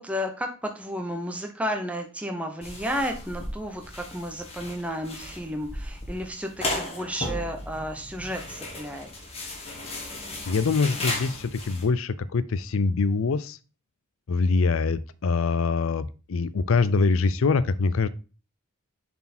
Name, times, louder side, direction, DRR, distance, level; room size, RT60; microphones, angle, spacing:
voice 1, 0.0-9.1, equal, 5° right, 3 dB, 0.7 m, -32 dB
sound 1, 2.6-11.9, left 2 dB, 25° left, 1.6 m, -35 dB
voice 2, 10.5-13.6 14.3-18.1, left 4 dB, 65° left, 16 dB, 0.4 m, -24 dB
7.0 x 4.3 x 4.2 m, 0.34 s
head